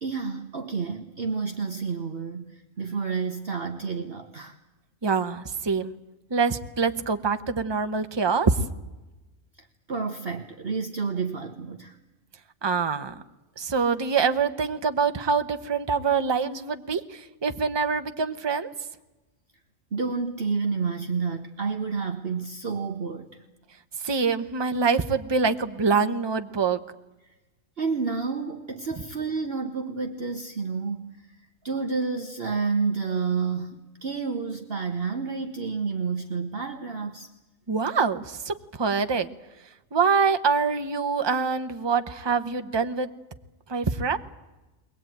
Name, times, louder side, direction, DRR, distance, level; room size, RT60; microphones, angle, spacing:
voice 1, 0.0-4.6 9.6-12.0 19.9-23.4 27.8-31.4 31.6-37.3, right 5 dB, 45° right, 1.3 m, -30 dB
voice 2, 5.0-5.9 6.3-8.6 12.6-13.2 13.6-18.7 24.0-26.8 37.7-39.3 39.9-43.1 43.7-44.2, right 5 dB, 20° right, 0.8 m, -25 dB
22.0 x 19.0 x 9.2 m
omnidirectional pair, 1.4 m